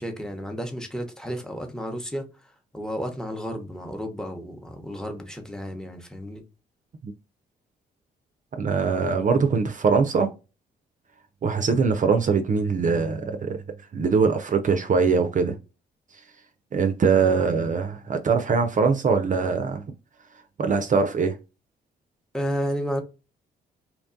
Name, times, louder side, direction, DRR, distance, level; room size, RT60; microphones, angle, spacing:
voice 1, 0.0-6.4 22.3-23.0, equal, 5° left, 0.8 m, -32 dB
voice 2, 8.6-10.3 11.4-13.6 13.9-15.6 16.7-19.8 20.6-21.4, right 5 dB, 40° right, 0.5 m, -22 dB
2.8 x 2.2 x 2.5 m
hypercardioid pair, 50°, 20 cm